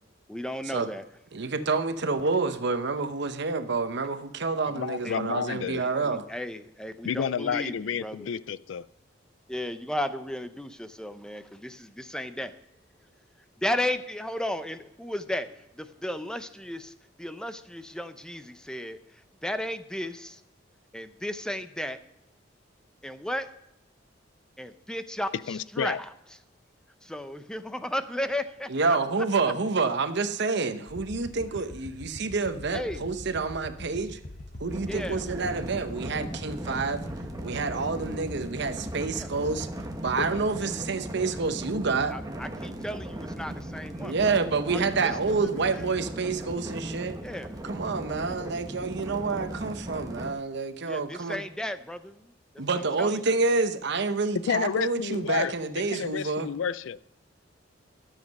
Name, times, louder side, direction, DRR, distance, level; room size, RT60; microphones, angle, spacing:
voice 1, 0.3-1.0 5.0-7.7 8.0-8.3 9.5-12.6 13.6-15.5 15.8-16.9 17.2-19.0 19.4-20.4 20.9-22.0 23.0-23.5 24.6-26.1 27.0-29.0 32.7-33.0 34.9-35.2 39.1-39.3 42.1-44.3 44.7-45.1 45.7-45.9 47.2-47.6 50.9-52.3 53.0-53.2, left 1 dB, 5° left, 10 dB, 0.5 m, -34 dB
voice 2, 1.3-6.2 28.7-34.2 34.6-37.0 37.4-39.7 40.0-42.2 44.0-47.2 47.6-51.4 52.6-56.5, right 4 dB, 60° right, 10 dB, 0.8 m, -28 dB
voice 3, 4.7-5.8 7.0-8.9 25.5-26.0 40.2-40.4 54.4-55.6 55.9-57.0, left 7 dB, 75° left, 18 dB, 0.4 m, -30 dB
sound 1, 30.9-40.5, left 1 dB, 40° left, 0.9 m, -43 dB
sound 2, 34.7-50.3, right 1 dB, 20° right, 1.0 m, -38 dB
12.5 x 7.4 x 5.3 m, 0.84 s
head